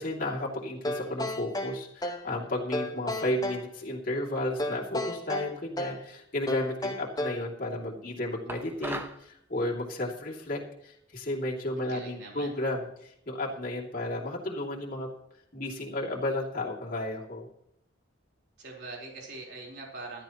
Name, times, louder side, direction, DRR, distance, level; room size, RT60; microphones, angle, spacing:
voice 1, 0.0-15.1 15.5-17.5, left 1 dB, 40° left, -3 dB, 2.8 m, -33 dB
sound 1, 0.8-2.3 2.7-3.7 4.6-6.1 6.5-7.5, left 1 dB, 20° left, 0.9 m, -33 dB
sound 2, 8.5-9.2, right 2 dB, 10° right, 0.8 m, -37 dB
voice 2, 11.7-12.5 18.6-20.2, right 3 dB, 55° right, -2 dB, 4.1 m, -43 dB
16.0 x 13.0 x 3.1 m, 0.75 s
head